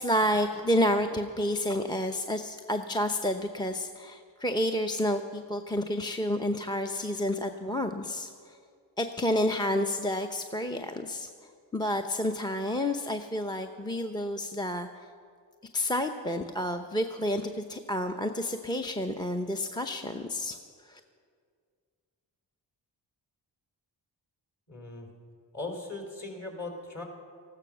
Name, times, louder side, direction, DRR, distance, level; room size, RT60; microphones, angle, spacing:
voice 1, 0.0-8.6 9.0-11.3 11.7-15.1 15.7-20.6 20.9-21.0, left 1 dB, 10° left, 7 dB, 0.7 m, -30 dB
voice 2, 24.7-25.1 25.5-27.0, left 2 dB, 40° left, 1 dB, 3.9 m, -38 dB
14.5 x 12.5 x 6.1 m, 2.1 s
cardioid pair, 50°, 46 cm